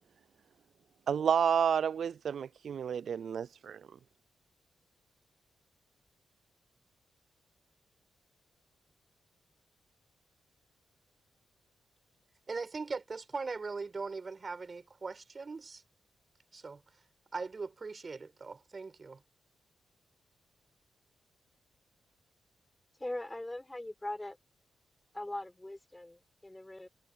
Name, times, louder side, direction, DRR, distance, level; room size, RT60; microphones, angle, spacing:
voice 1, 1.1-3.8, right 7 dB, 70° right, 0.4 m, -30 dB
voice 2, 12.5-15.8 16.5-16.8 17.3-19.2, right 4 dB, 45° right, 6.0 m, -40 dB
voice 3, 23.0-24.4 25.1-26.9, left 1 dB, 15° left, 4.8 m, -41 dB
supercardioid pair, 50°, 0 cm